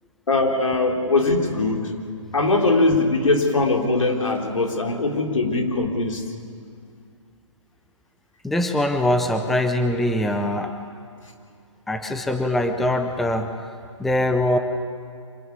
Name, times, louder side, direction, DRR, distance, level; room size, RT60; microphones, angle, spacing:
voice 1, 0.3-1.9 2.3-6.2, left 3 dB, 90° left, 2 dB, 3.8 m, -21 dB
voice 2, 8.4-10.7 11.9-13.5 14.0-14.6, left 1 dB, ahead, 6 dB, 0.5 m, -22 dB
25.5 x 17.0 x 9.5 m, 2.3 s
hypercardioid pair, 160°, 16 cm